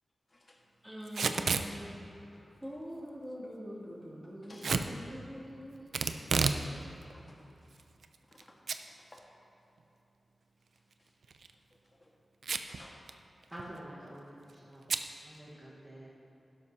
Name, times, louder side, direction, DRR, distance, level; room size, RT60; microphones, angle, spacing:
voice 1, 0.8-5.9, equal, 10° right, -7 dB, 2.5 m, -45 dB
Packing tape duct tape / Tearing, 1.1-1.7 4.6-4.9 5.9-6.6 7.0-7.1 7.8-8.4 8.7-8.8 9.2-9.3 11.2-11.5 12.4-12.8 13.1-13.2 13.4-13.8 14.9-15.1, right 5 dB, 80° right, 0.4 m, -30 dB
voice 2, 6.6-7.4 8.3-8.6 9.0-9.3 12.0-12.1 12.7-13.0, left 1 dB, 35° left, -1 dB, 1.6 m, -57 dB
voice 3, 13.5-14.9 15.2-16.1, right 1 dB, 25° right, -7 dB, 1.4 m, -48 dB
12.0 x 11.5 x 2.8 m, 2.9 s
wide cardioid pair, 70°, 0 cm